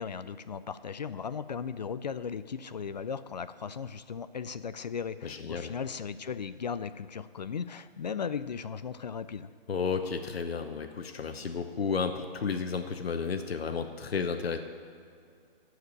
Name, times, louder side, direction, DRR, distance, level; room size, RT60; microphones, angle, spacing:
voice 1, 0.0-9.5, left 6 dB, 45° left, 13 dB, 0.4 m, -37 dB
voice 2, 5.2-5.7 9.7-14.6, left 5 dB, 85° left, 6 dB, 1.0 m, -32 dB
13.0 x 4.8 x 8.6 m, 2.4 s
hypercardioid pair, 165°, 30 cm